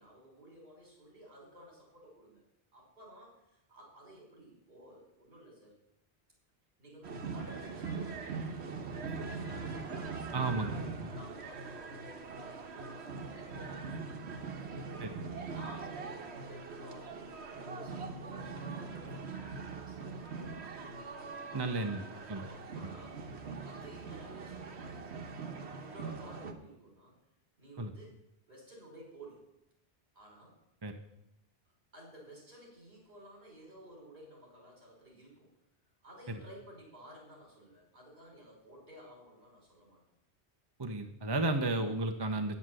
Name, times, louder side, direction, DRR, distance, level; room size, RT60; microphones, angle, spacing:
voice 1, 0.0-2.4 2.7-5.7 6.8-10.0 10.3-14.3 14.6-15.0 15.5-21.0 21.5-22.0 22.3-23.2 23.6-25.0 25.8-27.2 27.6-28.2 28.5-29.4 30.1-30.6 31.9-35.5 36.0-40.0, right 1 dB, 60° right, -3 dB, 5.8 m, -54 dB
sound 1, 7.0-26.5, right 4 dB, 80° right, 1.4 m, -42 dB
voice 2, 10.3-10.7 15.0-15.1 21.5-22.0 22.3-22.4 27.8-27.9 30.8-31.0 40.8-42.6, right 2 dB, 25° right, 6 dB, 0.7 m, -33 dB
9.5 x 8.3 x 7.6 m, 0.84 s
omnidirectional pair, 1.1 m